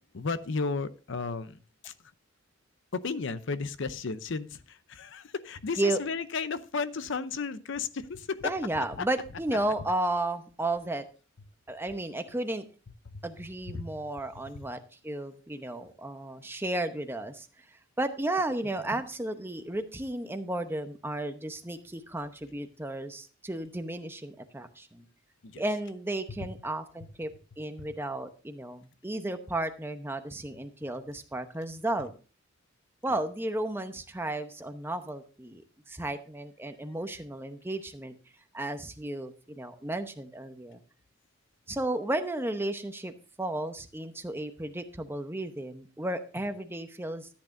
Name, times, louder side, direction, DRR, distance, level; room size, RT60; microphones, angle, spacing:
voice 1, 0.1-1.6 1.8-1.9 2.9-8.5 13.1-13.2 13.7-13.9 14.5-14.6 25.4-25.6 26.4-26.5 27.8-27.9, left 4 dB, 65° left, 0.7 m, -34 dB
voice 2, 8.4-11.0 11.7-12.6 13.2-17.5 18.0-25.0 25.6-32.2 33.0-35.6 35.9-38.1 38.5-40.8 41.7-47.3, right 1 dB, 10° right, 0.8 m, -33 dB
13.5 x 8.6 x 2.6 m
head